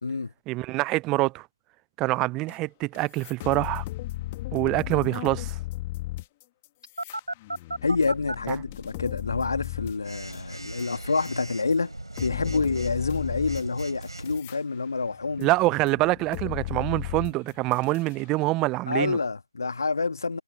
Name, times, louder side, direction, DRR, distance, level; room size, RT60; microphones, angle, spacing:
voice 1, 0.5-1.5 2.0-3.8 4.5-5.6 8.5-8.6 15.4-19.2, right 20 dB, 10° right, 0.5 m, -25 dB
sound 1, 2.5-2.6 3.0-11.3 11.7-11.8 12.2-14.6 15.0-18.2, left 18 dB, 15° left, 1.4 m, -36 dB
Telephone, 7.0-8.3 10.0-14.4, right 1 dB, 80° right, 5.7 m, -37 dB
voice 2, 7.8-11.9 12.2-15.5 18.9-20.4, left 4 dB, 50° left, 2.1 m, -27 dB
figure-of-eight pair, 160°, 2 cm